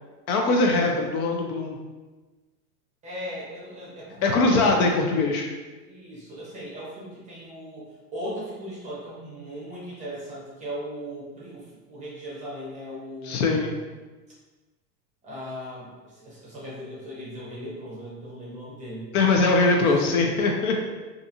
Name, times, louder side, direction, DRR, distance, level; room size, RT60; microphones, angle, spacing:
voice 1, 0.3-1.8 4.2-5.5 13.2-13.8 19.1-20.8, left 3 dB, 60° left, 2 dB, 0.5 m, -21 dB
voice 2, 3.0-4.8 5.8-13.8 15.2-19.1 19.7-19.9, equal, 15° right, -7 dB, 0.7 m, -38 dB
2.5 x 2.3 x 2.7 m, 1.3 s
hypercardioid pair, 130°, 50 cm